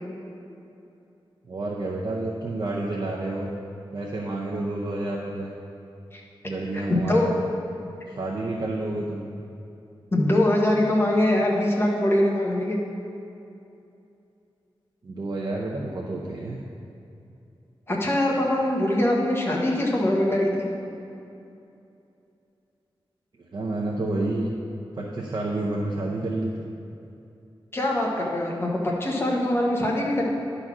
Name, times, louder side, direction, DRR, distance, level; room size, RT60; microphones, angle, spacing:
voice 1, 1.5-3.5 3.9-5.5 6.4-7.4 8.1-9.3 15.0-16.7 23.5-24.5 24.9-26.5, right 2 dB, 50° right, -3 dB, 0.7 m, -29 dB
voice 2, 10.1-12.8 17.9-20.7 27.7-30.2, left 1 dB, 25° left, -2 dB, 1.2 m, -23 dB
10.5 x 4.1 x 5.9 m, 2.7 s
wide cardioid pair, 140°, 9 cm